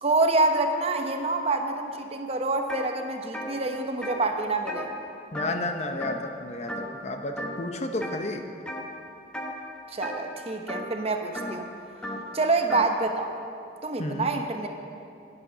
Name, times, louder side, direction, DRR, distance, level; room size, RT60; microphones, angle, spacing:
voice 1, 0.0-4.9 9.9-11.7 12.3-13.4 13.8-14.7, right 3 dB, 35° right, 5 dB, 0.8 m, -26 dB
sound 1, 2.7-2.9 3.2-5.7 6.0-6.4 6.7-7.0 7.4-8.2 8.7-9.0 9.3-12.9, equal, 5° left, 0.9 m, -36 dB
voice 2, 5.3-8.4 14.0-14.3, left 2 dB, 35° left, 5 dB, 0.7 m, -32 dB
10.5 x 9.8 x 6.7 m, 2.5 s
head